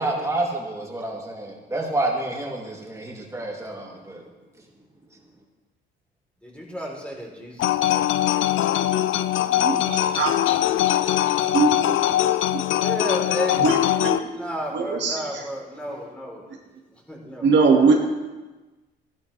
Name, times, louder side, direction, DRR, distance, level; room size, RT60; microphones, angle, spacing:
voice 1, 0.0-4.2, right 2 dB, 15° right, -2 dB, 3.0 m, -28 dB
voice 2, 6.4-8.9 9.4-10.2 12.7-13.7 14.2-16.4 17.1-17.8, equal, 5° left, -2 dB, 3.7 m, -34 dB
sound 1, 7.6-14.2, left 12 dB, 80° left, 0.5 m, -22 dB
voice 3, 9.5-10.3 11.5-11.7 13.6-14.3 14.7-15.4 17.4-17.9, right 4 dB, 65° right, 0 dB, 2.1 m, -21 dB
15.0 x 11.5 x 3.4 m, 1.2 s
cardioid pair, 90°, 20 cm